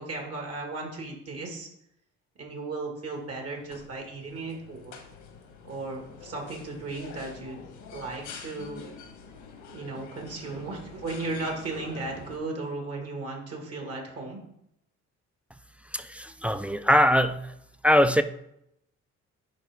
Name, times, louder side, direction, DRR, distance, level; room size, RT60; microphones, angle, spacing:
voice 1, 0.0-1.7 2.4-5.0 5.6-7.6 7.9-8.9 9.7-14.4, right 3 dB, 50° right, 1 dB, 1.8 m, -36 dB
sound 1, 3.2-12.4, left 5 dB, 85° left, 1.3 m, -46 dB
voice 2, 15.9-17.5 17.8-18.2, equal, 5° right, 9 dB, 0.3 m, -22 dB
10.5 x 3.6 x 3.5 m, 0.77 s
cardioid pair, 90°, 30 cm